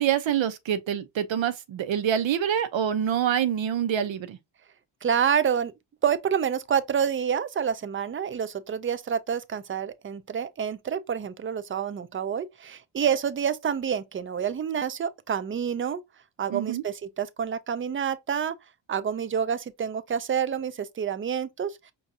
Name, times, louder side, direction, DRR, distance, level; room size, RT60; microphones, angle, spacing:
voice 1, 0.0-4.4 16.5-16.8, right 9 dB, 75° right, 0.7 m, -26 dB
voice 2, 5.0-5.7 6.0-16.0 16.4-18.5 18.9-21.8, right 8 dB, 30° right, 0.3 m, -28 dB
5.3 x 2.3 x 2.7 m
wide cardioid pair, 115°, 46 cm